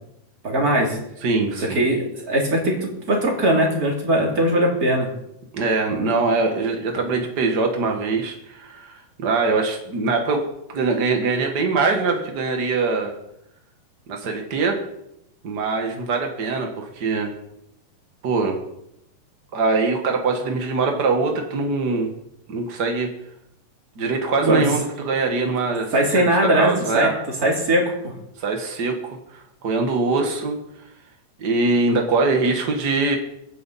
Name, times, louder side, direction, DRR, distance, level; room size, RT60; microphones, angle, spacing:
voice 1, 0.4-1.0 1.6-5.1 24.4-24.6 25.9-27.1 27.4-28.1, right 1 dB, 25° right, -1 dB, 3.0 m, -20 dB
voice 2, 1.2-1.8 5.5-10.4 10.7-13.1 14.1-14.8 15.4-17.3 18.2-18.6 19.5-22.1 22.5-23.1 24.0-26.3 26.5-27.2 28.4-30.6 31.4-33.2, right 3 dB, 65° right, 3 dB, 1.0 m, -23 dB
23.5 x 9.3 x 4.1 m, 0.81 s
omnidirectional pair, 4.1 m